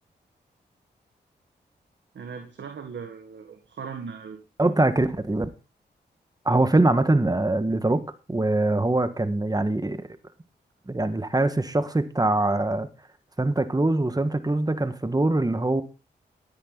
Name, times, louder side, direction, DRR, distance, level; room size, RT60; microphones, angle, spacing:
voice 1, 2.1-4.4, right 6 dB, 75° right, 1.8 m, -38 dB
voice 2, 4.6-5.5 6.4-8.0 8.3-10.1 10.9-12.9 13.4-15.8, right 2 dB, 20° right, 1.6 m, -23 dB
12.0 x 10.5 x 4.0 m
cardioid pair, 45°, 19 cm